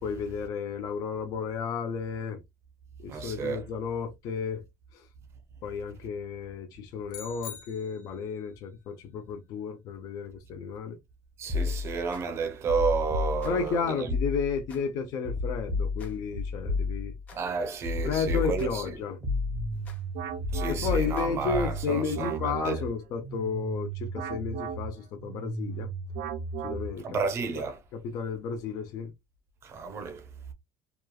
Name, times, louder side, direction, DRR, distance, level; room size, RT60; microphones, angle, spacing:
voice 1, 0.0-2.4 3.0-4.6 4.9-5.1 5.6-11.0 13.4-17.1 18.0-19.2 20.7-25.9 26.6-27.2 27.5-27.6 27.9-29.1, left 6 dB, 50° left, 0.5 m, -32 dB
voice 2, 3.1-3.6 11.4-14.1 17.3-18.7 20.5-22.8 27.0-27.8 29.6-30.2, right 5 dB, 35° right, 0.6 m, -31 dB
sound 1, 7.1-8.4, left 8 dB, 80° left, 0.9 m, -44 dB
sound 2, 11.5-12.2 12.7-13.7 14.1-14.8 15.2-17.4 17.8-18.9 19.2-20.0 20.4-21.8, left 4 dB, 20° left, 0.9 m, -32 dB
sound 3, 19.2-27.3, right 5 dB, 75° right, 0.6 m, -36 dB
3.0 x 2.3 x 2.2 m
cardioid pair, 150°, 8 cm